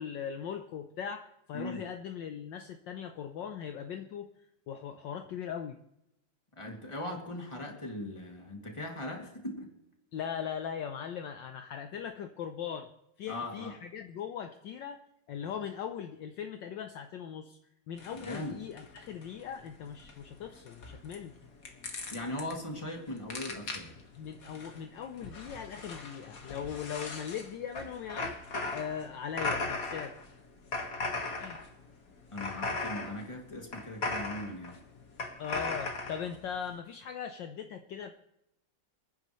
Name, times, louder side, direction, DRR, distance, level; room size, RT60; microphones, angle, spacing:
voice 1, 0.0-4.3 4.7-5.8 10.1-12.9 13.2-15.0 15.3-17.6 17.9-21.3 24.2-28.4 28.7-30.4 31.4-31.6 35.4-38.1, left 8 dB, 65° left, 7 dB, 1.3 m, -39 dB
voice 2, 6.6-9.7 13.3-13.8 18.1-18.6 22.1-23.9 32.3-34.8, left 1 dB, 15° left, 1 dB, 2.3 m, -39 dB
sound 1, 18.0-36.7, left 3 dB, 45° left, 1.9 m, -39 dB
28.5 x 9.8 x 3.1 m, 0.83 s
omnidirectional pair, 2.3 m